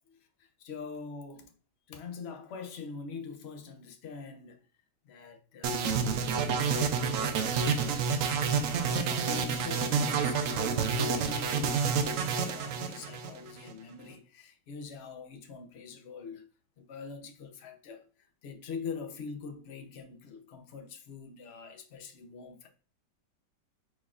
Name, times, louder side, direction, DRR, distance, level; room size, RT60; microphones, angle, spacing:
voice 1, 0.6-1.5 1.9-4.6 5.0-6.2 8.7-16.5 16.8-18.0 18.4-22.7, left 5 dB, 55° left, 0.7 m, -43 dB
sound 1, 5.6-13.7, right 5 dB, 70° right, 0.8 m, -29 dB
4.5 x 4.1 x 2.4 m
omnidirectional pair, 1.8 m